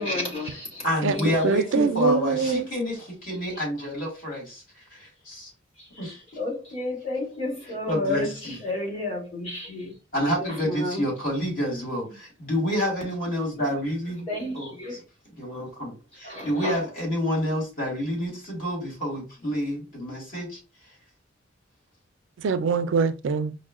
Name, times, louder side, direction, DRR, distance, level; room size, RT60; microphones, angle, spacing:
voice 1, 0.0-1.9 5.8-9.9 10.4-11.1 14.3-15.0 16.2-16.8, left 2 dB, 30° left, 2.1 m, -32 dB
voice 2, 0.8-5.5 6.0-6.2 7.9-8.6 10.1-14.3 14.5-15.0 15.4-20.6, equal, 50° left, 2.0 m, -28 dB
voice 3, 1.4-2.7 22.4-23.6, right 5 dB, 75° right, 0.4 m, -23 dB
5.3 x 2.1 x 2.3 m
head